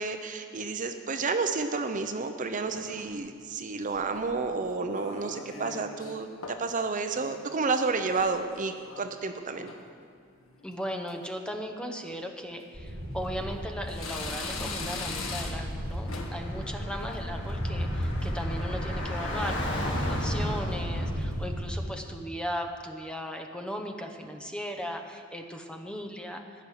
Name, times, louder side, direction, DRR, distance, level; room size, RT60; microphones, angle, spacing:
voice 1, 0.0-9.7, right 4 dB, 40° right, 7 dB, 0.7 m, -31 dB
sound 1, 2.5-3.3 3.9-4.5 4.9-6.1 6.4-6.8 7.1-9.1 9.4-9.9 10.4-10.7 11.1-11.2 12.1-12.3 12.9-13.5 13.9-15.8 16.1-16.5 16.9-17.2, left 3 dB, 85° left, 1.7 m, -41 dB
voice 2, 10.6-26.7, equal, 5° left, 4 dB, 0.9 m, -37 dB
sound 2, 12.7-21.9, equal, 65° right, 3.7 m, -34 dB
Car / Traffic noise roadway noise, 16.0-21.1, left 1 dB, 65° left, 2.0 m, -36 dB
15.0 x 6.3 x 10.0 m, 2.2 s
head